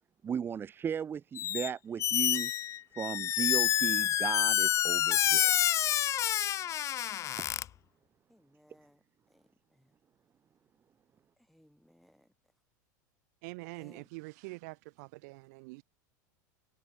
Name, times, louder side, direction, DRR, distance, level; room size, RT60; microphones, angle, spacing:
voice 1, 0.2-2.5 3.0-5.7, right 7 dB, 20° right, 0.6 m, -36 dB
Squeak, 1.4-1.7 2.0-7.6, left 12 dB, 30° left, 0.4 m, -28 dB
voice 2, 8.3-10.0 11.4-12.5 13.7-14.1, equal, ahead, 7.6 m, -63 dB
voice 3, 13.4-15.8, right 27 dB, 65° right, 0.7 m, -45 dB
supercardioid pair, 120°, 10 cm